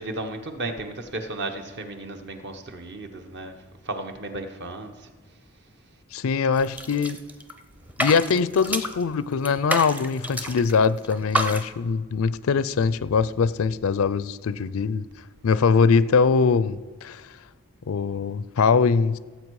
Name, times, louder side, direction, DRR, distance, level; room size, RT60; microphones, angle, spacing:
voice 1, 0.0-3.5 3.8-4.9, right 2 dB, 50° right, 1.1 m, -34 dB
voice 2, 6.1-7.2 8.0-15.1 15.4-17.2 17.9-19.2, left 5 dB, 65° left, 0.4 m, -22 dB
sound 1, 6.6-7.6 7.9-9.0 9.4-10.8 11.0-11.6, right 1 dB, 5° right, 0.6 m, -29 dB
16.5 x 7.8 x 4.8 m
head